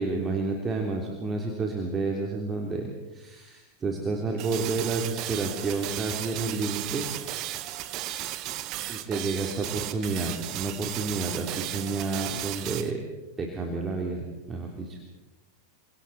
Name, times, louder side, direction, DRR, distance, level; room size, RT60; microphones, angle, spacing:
voice 1, 0.0-2.9 3.1-7.0 8.9-13.0 13.4-15.0, right 3 dB, 20° right, 1 dB, 3.3 m, -30 dB
sound 1, 4.4-12.9, right 14 dB, 40° right, 1.4 m, -35 dB
28.5 x 26.0 x 4.3 m, 1.1 s
figure-of-eight pair, 90°, 0 cm